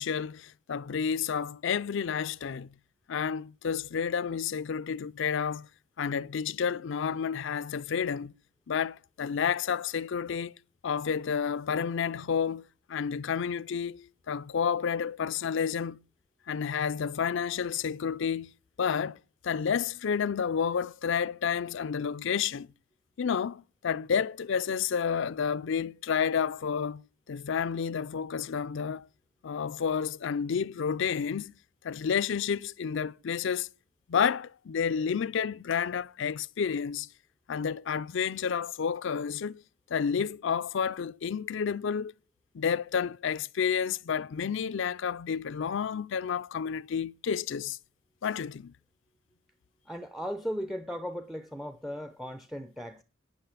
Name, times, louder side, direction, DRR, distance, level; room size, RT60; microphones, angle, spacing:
voice 1, 0.0-2.7 3.1-5.7 6.0-8.3 8.7-10.5 10.8-12.6 12.9-16.0 16.5-18.5 18.8-19.2 19.4-22.7 23.2-27.0 27.3-29.1 29.4-31.5 31.8-33.7 34.1-37.1 37.5-39.6 39.9-42.1 42.5-47.8 48.2-48.7, left 7 dB, 65° left, 0.4 m, -30 dB
voice 2, 49.8-53.0, equal, ahead, 0.5 m, -37 dB
9.8 x 8.6 x 5.7 m
head